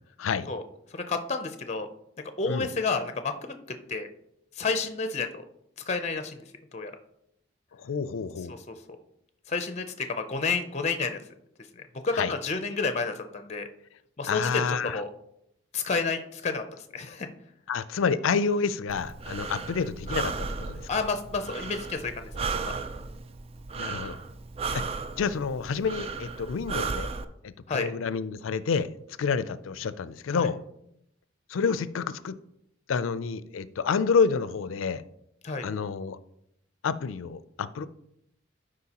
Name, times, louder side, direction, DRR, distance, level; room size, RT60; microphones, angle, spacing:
voice 1, 0.2-0.5 2.5-2.7 7.8-8.6 12.1-12.3 14.3-15.0 17.7-20.9 23.8-24.2 24.7-24.9 25.2-27.1 27.4-28.9 29.2-30.6 31.5-32.4 32.9-35.0 35.6-36.2 36.8-37.9, left 5 dB, 85° left, 15 dB, 0.4 m, -28 dB
voice 2, 0.9-1.9 2.4-3.5 3.9-4.1 4.6-5.4 5.9-6.4 6.7-6.9 8.7-8.8 9.5-11.2 11.8-13.7 14.2-15.1 15.7-16.6 16.9-17.3 20.9-22.1 22.5-22.7 27.7-27.9 30.3-30.5 35.4-35.7, left 4 dB, 35° left, 8 dB, 0.5 m, -30 dB
Breathing, 18.9-27.2, right 4 dB, 30° right, 0.4 m, -35 dB
12.0 x 5.0 x 2.9 m, 0.78 s
head